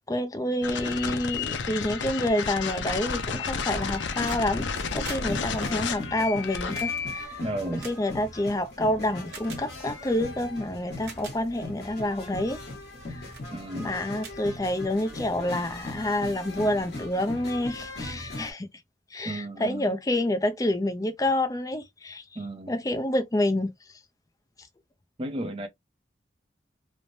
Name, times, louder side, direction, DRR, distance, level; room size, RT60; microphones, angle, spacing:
voice 1, 0.1-4.7 4.9-7.4 7.7-12.6 13.1-13.3 13.8-18.7 19.1-22.2 22.7-23.7, left 1 dB, 20° left, 0.4 m, -28 dB
sound 1, 0.6-7.3, left 5 dB, 85° left, 0.5 m, -31 dB
sound 2, 3.3-18.5, left 2 dB, 55° left, 1.3 m, -39 dB
sound 3, 3.8-4.5 4.8-8.6 9.3-9.6 10.4-10.5 10.9-11.4 12.0-12.2 12.8-13.0 13.3-13.5 13.9-14.0 14.2-15.1 16.3-16.4, right 5 dB, 65° right, 1.2 m, -45 dB
voice 2, 7.4-7.9 13.5-14.0 19.2-20.0 22.4-22.8 25.2-25.7, right 1 dB, 30° right, 0.6 m, -33 dB
3.1 x 2.1 x 2.6 m
head